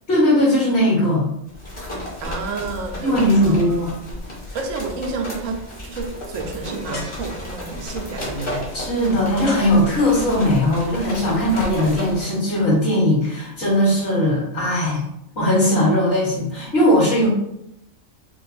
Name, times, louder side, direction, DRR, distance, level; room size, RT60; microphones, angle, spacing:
voice 1, 0.1-1.3 3.0-3.9 8.7-15.0 15.3-17.3, left 1 dB, 55° left, -9 dB, 1.5 m, -19 dB
sound 1, 1.5-12.3, left 1 dB, 25° left, 0.8 m, -33 dB
voice 2, 2.2-3.6 4.5-8.7, right 4 dB, 80° right, 3 dB, 1.0 m, -30 dB
sound 2, 6.9-7.8 9.5-10.4, left 1 dB, 80° left, 1.6 m, -39 dB
4.4 x 2.3 x 2.6 m, 0.80 s
omnidirectional pair, 1.3 m